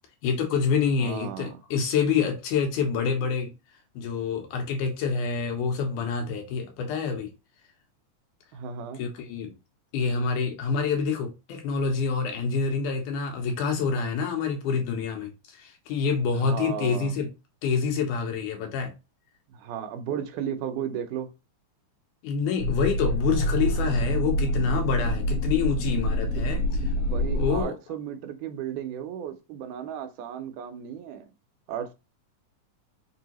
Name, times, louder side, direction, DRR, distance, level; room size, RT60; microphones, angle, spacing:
voice 1, 0.2-3.5 4.0-7.3 9.0-9.5 9.9-17.3 17.6-18.9 22.2-26.6 27.3-27.8, left 5 dB, 90° left, 2.5 m, -27 dB
voice 2, 1.0-1.6 8.5-9.0 16.3-17.1 19.5-21.3 26.4-26.5 26.8-31.3 31.7-31.9, right 8 dB, 90° right, 2.2 m, -35 dB
sound 1, 22.6-27.6, equal, 55° left, 1.9 m, -26 dB
5.4 x 2.7 x 2.9 m
omnidirectional pair, 3.5 m